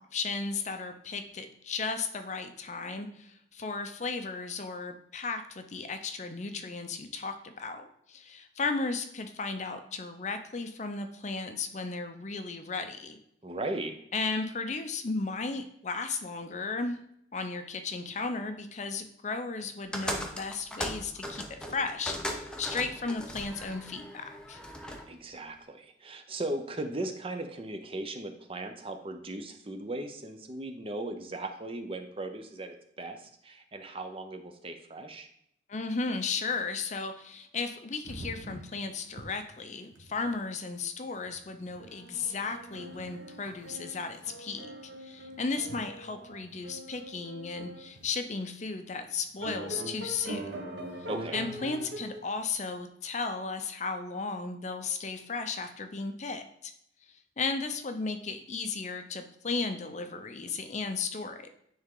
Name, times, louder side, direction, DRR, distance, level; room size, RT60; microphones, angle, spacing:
voice 1, 0.1-13.2 14.1-17.0 17.3-24.6 35.7-44.7 45.0-50.6 51.3-56.7 57.4-61.5, left 4 dB, 40° left, 8 dB, 0.6 m, -35 dB
voice 2, 13.4-14.0 25.1-35.3 51.1-51.5, right 2 dB, 30° right, 6 dB, 0.6 m, -37 dB
sound 1, 19.9-25.1, equal, 5° left, 0.7 m, -38 dB
sound 2, 38.0-38.8 39.1-39.2 39.6-39.7 39.9-40.3 41.3-41.4 41.7-48.1 48.7-48.8 49.4-52.3, right 1 dB, 85° right, 1.0 m, -43 dB
9.5 x 3.6 x 3.8 m, 0.71 s
head